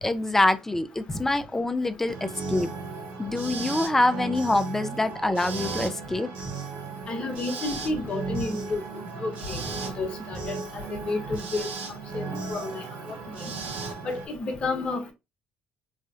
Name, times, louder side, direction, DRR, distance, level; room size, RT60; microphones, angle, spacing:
voice 1, 0.0-2.7 3.2-6.3 13.4-13.5, left 2 dB, 15° left, 0.5 m, -25 dB
sound 1, 2.1-14.3, right 4 dB, 75° right, 0.8 m, -35 dB
voice 2, 7.1-8.8 9.2-9.6 10.0-11.7 12.1-12.8 14.0-15.1, left 3 dB, 45° left, 1.1 m, -30 dB
3.1 x 2.3 x 2.7 m
supercardioid pair, 85°, 3 cm